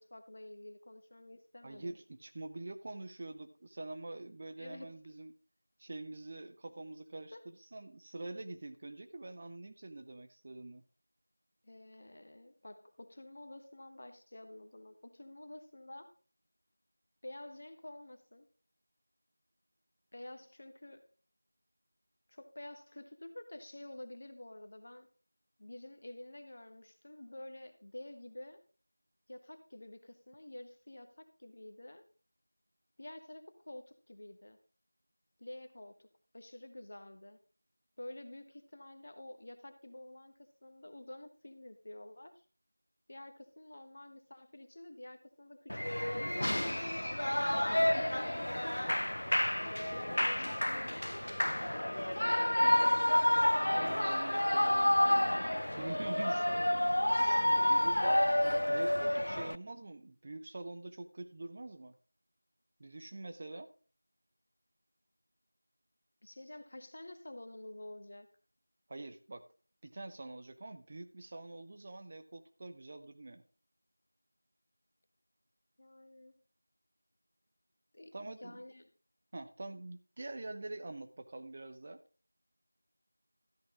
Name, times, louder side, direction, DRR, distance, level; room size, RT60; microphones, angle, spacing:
voice 1, 0.0-2.0 4.6-4.9 7.3-7.5 11.6-16.1 17.2-18.5 20.1-21.1 22.3-25.1 25.6-28.6 29.3-32.0 33.0-34.6 35.4-36.1 36.3-37.4 38.0-42.4 43.1-48.7 50.1-51.1 59.4-59.5 66.2-68.3 75.8-76.3 77.9-78.9, left 1 dB, 30° left, 8 dB, 1.2 m, -50 dB
voice 2, 1.6-5.3 5.8-10.8 53.8-54.9 55.8-58.2 58.7-62.0 62.8-63.7 68.9-69.4 69.8-73.4 78.1-78.6 79.3-82.0, right 2 dB, 20° right, 8 dB, 0.7 m, -45 dB
Shout / Cheering, 45.7-59.6, left 1 dB, 55° left, 0.4 m, -29 dB
13.5 x 8.6 x 3.7 m, 0.39 s
figure-of-eight pair, 175°, 0 cm